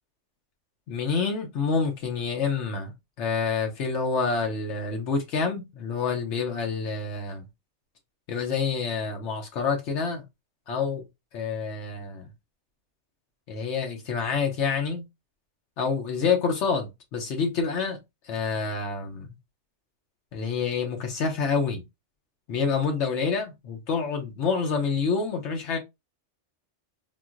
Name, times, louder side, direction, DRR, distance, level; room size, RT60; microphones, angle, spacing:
voice 1, 0.9-2.9 3.2-7.4 8.3-10.2 10.7-11.0 11.3-12.3 13.5-15.0 15.8-18.0 18.3-19.3 20.3-21.8 22.5-25.8, left 5 dB, 75° left, 1.0 m, -27 dB
3.7 x 2.5 x 2.4 m
omnidirectional pair, 1.2 m